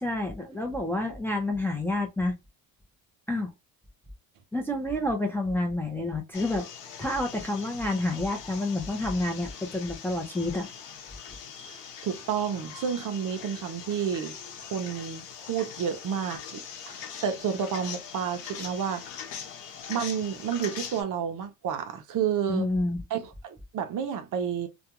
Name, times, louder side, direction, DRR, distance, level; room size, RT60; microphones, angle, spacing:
voice 1, 0.0-2.4 3.3-3.5 4.5-6.7 7.0-10.7 22.5-23.0, left 2 dB, 5° left, 0.5 m, -29 dB
sound 1, 6.3-21.0, left 7 dB, 85° left, 0.8 m, -42 dB
voice 2, 11.6-19.0 19.9-22.7 23.1-24.7, right 8 dB, 50° right, 0.6 m, -31 dB
2.4 x 2.2 x 2.8 m
cardioid pair, 120°, 41 cm